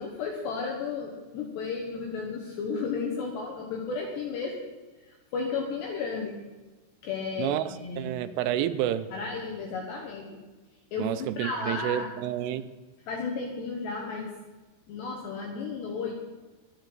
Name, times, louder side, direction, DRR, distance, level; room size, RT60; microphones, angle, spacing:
voice 1, 0.0-4.6 5.0-6.4 7.0-8.2 9.1-10.4 10.9-12.1 13.0-14.3 14.9-16.1, left 4 dB, 65° left, 1 dB, 3.1 m, -33 dB
voice 2, 7.4-9.1 11.0-12.7, right 11 dB, 80° right, 11 dB, 3.0 m, -29 dB
24.0 x 9.3 x 4.1 m, 1.2 s
omnidirectional pair, 5.9 m